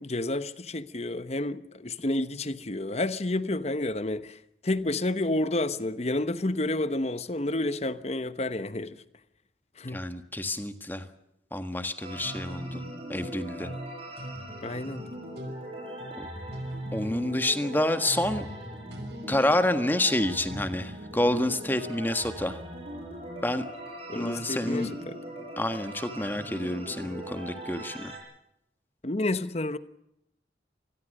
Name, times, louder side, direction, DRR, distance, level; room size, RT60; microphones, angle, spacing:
voice 1, 0.0-4.4 4.6-9.0 9.8-10.0 14.6-15.1 24.1-25.2 29.0-29.8, left 2 dB, 35° left, 1.0 m, -30 dB
voice 2, 9.9-11.1 11.5-12.8 13.1-13.7 16.2-16.3 16.9-18.5 19.3-22.6 23.4-23.7 24.1-24.9 25.6-28.1, left 1 dB, 10° left, 1.6 m, -28 dB
sound 1, 12.0-28.2, equal, 30° right, 7.7 m, -41 dB
sound 2, 12.1-13.4 13.6-14.5 14.9-15.1 15.4-15.7 16.0-16.1 16.5-17.2 18.1-18.7 18.9-19.3 20.5-20.7 24.1-24.2 24.7-24.9, right 1 dB, 70° right, 5.7 m, -40 dB
26.0 x 20.5 x 6.6 m
head